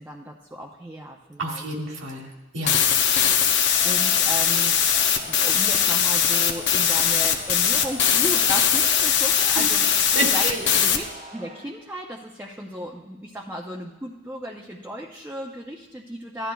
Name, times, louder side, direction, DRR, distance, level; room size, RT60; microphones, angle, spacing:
voice 1, 0.0-1.7 3.2-5.0 5.3-11.0 11.3-16.5, equal, 10° right, -1 dB, 0.6 m, -35 dB
voice 2, 1.4-2.8 9.5-9.6 10.2-10.6, right 2 dB, 75° right, 0 dB, 1.9 m, -29 dB
sound 1, 2.7-11.0, left 8 dB, 65° left, 0.7 m, -20 dB
Crowd, 3.6-11.7, right 2 dB, 40° right, 1.3 m, -43 dB
15.5 x 11.0 x 2.3 m, 1.1 s
head